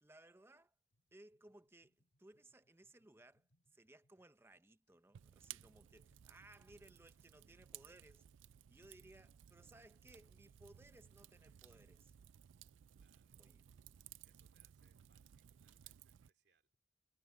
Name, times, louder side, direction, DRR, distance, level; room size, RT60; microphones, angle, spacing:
voice 1, 0.0-0.7 1.1-1.9 2.2-8.3 8.7-12.1 13.4-13.6, right 1 dB, 10° right, 0.6 m, -63 dB
sound 1, 0.9-7.2, equal, 80° left, 5.2 m, -84 dB
Fire, 5.1-16.3, right 11 dB, 80° right, 0.4 m, -59 dB
voice 2, 13.0-13.5 14.2-16.7, right 4 dB, 55° right, 3.6 m, -80 dB
head